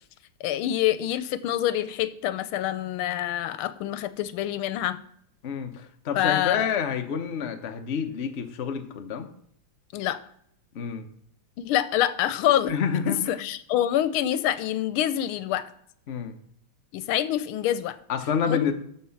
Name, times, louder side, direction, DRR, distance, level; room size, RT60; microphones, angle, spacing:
voice 1, 0.4-5.0 6.1-6.7 9.9-10.2 11.6-12.7 13.1-15.7 16.9-18.0 18.5-18.7, left 12 dB, 90° left, 14 dB, 1.5 m, -26 dB
voice 2, 5.4-9.3 10.7-11.1 12.7-13.4 16.1-16.4 18.1-18.7, left 7 dB, 50° left, 5 dB, 0.8 m, -28 dB
13.0 x 4.5 x 5.8 m, 0.69 s
omnidirectional pair, 2.3 m